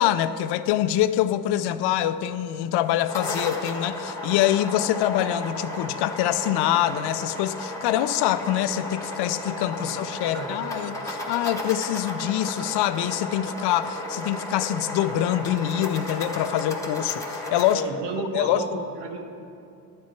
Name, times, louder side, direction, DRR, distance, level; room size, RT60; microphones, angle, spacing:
voice 1, 0.0-17.8 18.3-18.6, left 12 dB, 80° left, 13 dB, 0.5 m, -25 dB
sound 1, 2.8-17.7, left 1 dB, 10° left, 1.3 m, -34 dB
voice 2, 10.2-10.6 17.7-19.3, right 3 dB, 85° right, 4 dB, 1.2 m, -32 dB
11.5 x 7.5 x 4.5 m, 2.6 s
cardioid pair, 100°, 39 cm